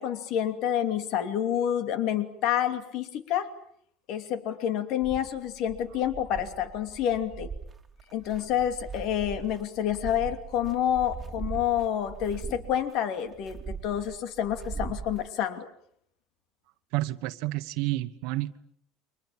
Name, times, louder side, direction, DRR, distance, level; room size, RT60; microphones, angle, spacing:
voice 1, 0.0-3.5 4.1-7.5 8.1-15.7, left 10 dB, 55° left, 2.8 m, -28 dB
sound 1, 5.0-15.3, right 5 dB, 15° right, 2.6 m, -40 dB
voice 2, 16.9-18.6, right 17 dB, 65° right, 1.3 m, -30 dB
29.5 x 25.0 x 7.5 m
cardioid pair, 150°, 0 cm